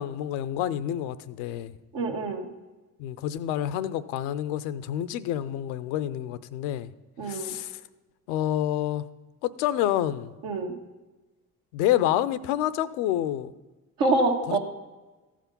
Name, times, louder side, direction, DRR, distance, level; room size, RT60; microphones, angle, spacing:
voice 1, 0.0-1.7 3.0-6.9 7.3-7.8 8.3-9.1 9.4-10.3 11.7-13.5 14.5-14.6, left 12 dB, 75° left, 0.6 m, -28 dB
voice 2, 1.9-2.5 7.2-7.6 10.4-10.7 14.0-14.6, right 2 dB, 75° right, 1.4 m, -26 dB
14.5 x 5.0 x 5.2 m
hypercardioid pair, 60°, 42 cm